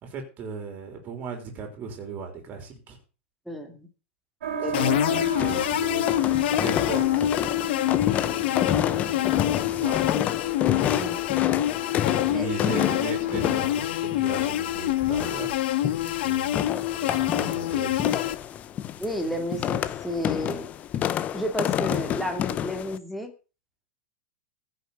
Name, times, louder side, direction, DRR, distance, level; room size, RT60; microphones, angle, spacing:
voice 1, 0.0-3.0 4.6-6.1 6.5-7.2 9.7-10.2 11.9-15.6 16.2-18.2, right 5 dB, 25° right, 4 dB, 3.5 m, -37 dB
voice 2, 3.5-3.9 4.6-5.3 10.8-11.2 12.3-12.5 19.0-20.7 21.3-23.3, equal, ahead, 3 dB, 2.4 m, -32 dB
sound 1, 4.4-15.5, right 1 dB, 80° right, 3.6 m, -37 dB
sound 2, 4.7-18.4, left 13 dB, 55° left, 1.2 m, -26 dB
sound 3, 5.2-23.0, left 10 dB, 20° left, 0.7 m, -29 dB
15.5 x 6.5 x 6.7 m, 0.33 s
supercardioid pair, 165°, 7 cm